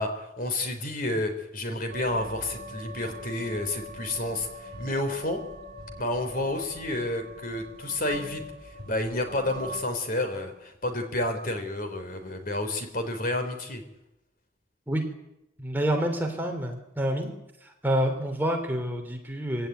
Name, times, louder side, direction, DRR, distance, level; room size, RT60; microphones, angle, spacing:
voice 1, 0.0-5.4 6.0-13.8, left 1 dB, 45° left, 6 dB, 3.7 m, -30 dB
sound 1, 1.9-9.8, equal, 50° right, 7.0 m, -42 dB
voice 2, 15.6-17.3 17.6-19.7, equal, 10° right, 3 dB, 3.2 m, -28 dB
23.5 x 17.0 x 9.4 m, 0.89 s
head